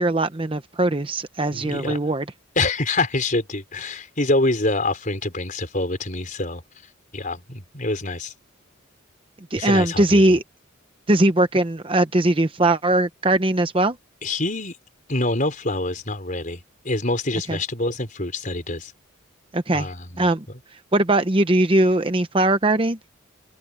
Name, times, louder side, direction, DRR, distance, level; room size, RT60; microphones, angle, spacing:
voice 1, 0.0-2.2 9.5-10.4 11.1-14.0 17.5-17.6 19.5-19.9 20.2-20.4 20.9-23.0, right 1 dB, 25° right, 0.8 m, -20 dB
voice 2, 1.5-2.1 2.5-6.6 7.1-8.3 9.6-10.4 14.2-14.8 15.1-18.9 19.7-20.3, left 2 dB, 40° left, 5.1 m, -26 dB
head